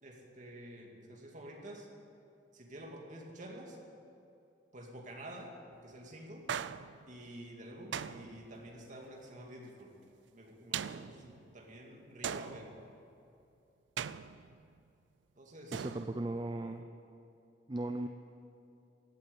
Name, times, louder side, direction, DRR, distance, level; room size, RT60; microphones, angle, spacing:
voice 1, 0.0-1.9 2.5-3.8 4.7-5.5 5.8-6.5 7.1-9.9 10.3-12.7 15.4-15.9, right 1 dB, 45° right, 0 dB, 2.3 m, -49 dB
sound 1, 6.5-7.3 7.9-8.7 10.7-11.5 12.2-13.0 14.0-14.8 15.7-16.5, right 8 dB, 80° right, 0.4 m, -41 dB
voice 2, 15.7-16.9 17.7-18.1, right 2 dB, 25° right, 5 dB, 0.5 m, -37 dB
16.0 x 8.8 x 8.5 m, 2.7 s
head